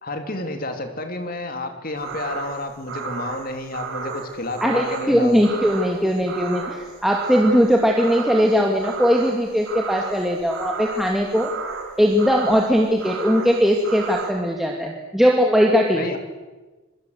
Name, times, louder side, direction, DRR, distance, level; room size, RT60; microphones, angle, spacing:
voice 1, 0.0-5.3 15.9-16.2, left 2 dB, 45° left, 7 dB, 2.8 m, -30 dB
sound 1, 2.0-14.3, right 5 dB, 75° right, 7.9 m, -33 dB
voice 2, 4.6-11.5 12.0-16.2, equal, ahead, 0 dB, 2.4 m, -19 dB
27.5 x 23.5 x 8.0 m, 1.2 s
head